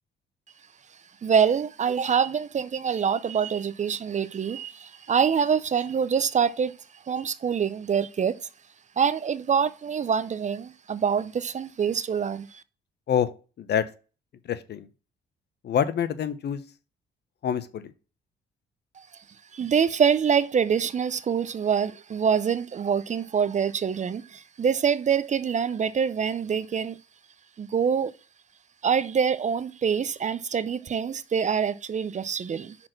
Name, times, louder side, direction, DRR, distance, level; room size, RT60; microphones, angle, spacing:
voice 1, 1.2-6.8 7.1-8.4 9.0-12.6 19.0-19.1 19.5-27.0 27.6-28.1 28.8-32.8, right 7 dB, 35° right, 0.5 m, -25 dB
voice 2, 14.4-14.9 15.6-16.6 17.4-17.9, left 8 dB, 55° left, 0.8 m, -26 dB
6.0 x 4.3 x 6.4 m
cardioid pair, 90°, 20 cm